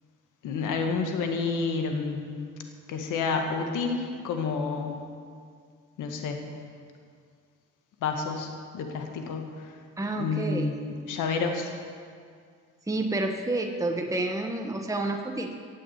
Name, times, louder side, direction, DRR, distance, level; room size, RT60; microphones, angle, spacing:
voice 1, 0.4-2.4 2.9-5.0 6.0-6.4 8.0-8.5 8.7-9.5 10.2-11.7, left 4 dB, 90° left, 4 dB, 1.9 m, -29 dB
voice 2, 10.0-10.8 12.9-15.5, right 2 dB, 10° right, 3 dB, 1.2 m, -29 dB
16.5 x 7.6 x 8.3 m, 2.1 s
cardioid pair, 90°, 30 cm